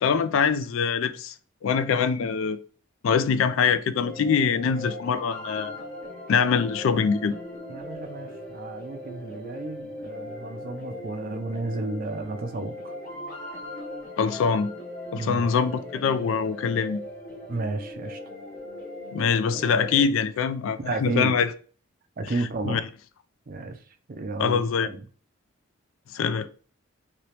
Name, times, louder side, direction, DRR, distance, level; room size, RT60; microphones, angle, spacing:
voice 1, 0.0-1.3 1.6-2.6 3.0-5.7 6.3-7.3 14.2-14.7 15.1-17.0 19.1-21.5 22.6-22.8 24.4-24.9 26.1-26.5, left 6 dB, 65° left, 0.3 m, -24 dB
sound 1, 4.0-20.0, left 1 dB, 40° left, 0.9 m, -39 dB
voice 2, 7.7-12.9 15.1-15.5 17.5-18.2 19.7-19.8 20.8-21.4 22.2-22.9 23.5-23.8 24.1-25.0, right 3 dB, 40° right, 0.4 m, -32 dB
2.9 x 2.9 x 3.1 m
head